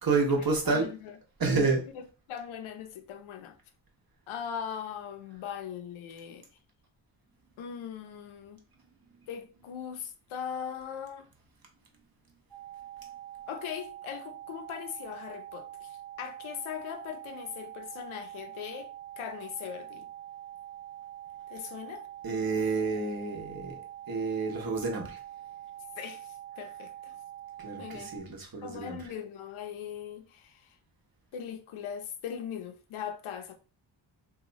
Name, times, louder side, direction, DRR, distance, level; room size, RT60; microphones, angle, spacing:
voice 1, 0.0-0.9 1.4-1.8 22.2-23.8 24.1-25.2 27.6-29.1, right 3 dB, 45° right, 1.1 m, -29 dB
voice 2, 0.7-1.2 2.3-3.6 4.3-6.5 7.6-8.6 9.3-11.3 13.5-18.9 19.2-20.1 21.5-22.1 26.0-27.2 27.8-30.8 31.3-33.6, left 8 dB, 80° left, 0.7 m, -40 dB
sound 1, 12.5-28.2, right 12 dB, 5° left, 0.8 m, -45 dB
2.8 x 2.3 x 3.9 m
cardioid pair, 80°, 48 cm